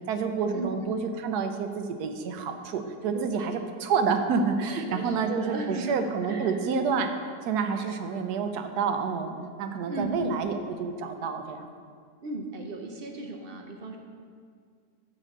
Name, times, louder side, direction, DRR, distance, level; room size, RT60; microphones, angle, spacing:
voice 1, 0.1-7.1 7.4-11.7, right 5 dB, 80° right, 7 dB, 1.2 m, -29 dB
voice 2, 3.1-3.5 4.6-6.0 6.3-6.5 9.9-10.4 12.2-14.0, right 2 dB, 60° right, 3 dB, 0.6 m, -36 dB
7.4 x 5.0 x 6.5 m, 2.1 s
omnidirectional pair, 1.7 m